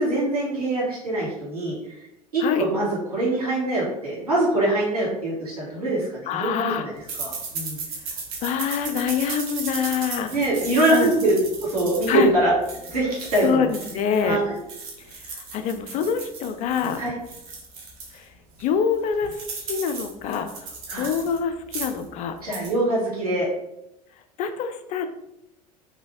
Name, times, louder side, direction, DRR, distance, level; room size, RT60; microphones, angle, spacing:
voice 1, 0.0-1.7 2.3-6.9 7.2-7.8 10.3-11.3 11.6-12.5 12.9-13.6 14.2-14.5 17.0-17.1 20.9-21.1 22.4-23.5, right 2 dB, 85° right, -6 dB, 1.5 m, -23 dB
voice 2, 6.3-6.9 8.4-10.3 10.9-11.1 12.1-12.3 13.4-14.4 15.1-17.0 18.1-18.3 18.6-22.4 24.4-25.1, left 7 dB, 40° left, 8 dB, 0.4 m, -25 dB
sound 1, 7.1-14.2 14.6-18.2 18.6-18.7 18.9-21.4 21.6-22.1 22.4-22.7, right 4 dB, 65° right, 0.9 m, -36 dB
2.7 x 2.7 x 2.9 m, 0.85 s
figure-of-eight pair, 75°, 19 cm